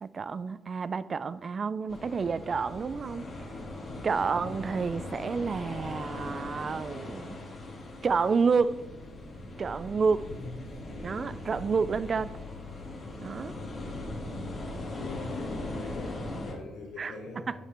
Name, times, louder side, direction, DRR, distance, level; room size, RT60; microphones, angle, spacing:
voice 1, 0.0-3.2 4.0-7.4 8.0-8.8 9.6-10.3 11.0-12.3 13.2-13.5 17.0-17.1, right 5 dB, 40° right, 0.3 m, -29 dB
sound 1, 1.9-16.5, left 2 dB, 40° left, 1.9 m, -39 dB
voice 2, 4.2-4.5 10.3-10.6 13.7-14.1 14.9-17.5, left 3 dB, 80° left, 1.7 m, -43 dB
10.5 x 6.1 x 3.4 m
cardioid pair, 90°, 0 cm